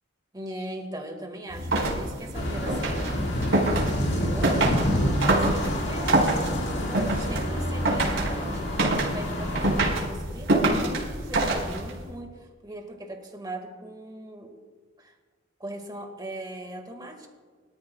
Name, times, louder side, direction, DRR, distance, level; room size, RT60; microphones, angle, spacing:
voice 1, 0.3-3.3 4.0-6.4 6.8-8.6 9.0-14.6 15.0-15.1 15.6-17.3, right 1 dB, 20° right, 3 dB, 2.0 m, -40 dB
sound 1, 1.5-12.0, right 2 dB, 75° right, 4.4 m, -26 dB
sound 2, 2.3-9.9, equal, 65° left, 2.1 m, -28 dB
23.5 x 13.5 x 2.4 m, 1.5 s
head